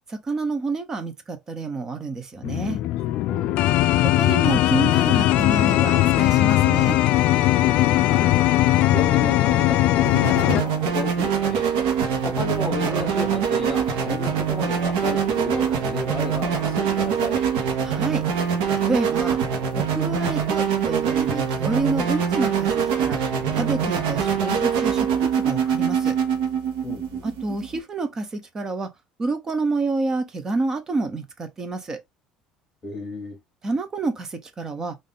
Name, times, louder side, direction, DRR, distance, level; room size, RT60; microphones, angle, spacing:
voice 1, 0.1-2.8 4.0-7.0 17.8-18.2 18.7-19.4 19.8-23.2 23.5-26.2 27.2-28.9 29.2-32.0 33.6-35.0, right 3 dB, 20° right, 0.6 m, -28 dB
sound 1, 2.4-10.6, left 15 dB, 60° left, 0.4 m, -19 dB
voice 2, 3.1-3.6 7.7-8.4 8.9-11.7 12.2-17.4 26.8-27.3 32.8-33.4, left 3 dB, 20° left, 1.6 m, -32 dB
sound 2, 10.0-27.8, right 7 dB, 85° right, 1.0 m, -24 dB
3.5 x 2.6 x 3.6 m
cardioid pair, 160°, 3 cm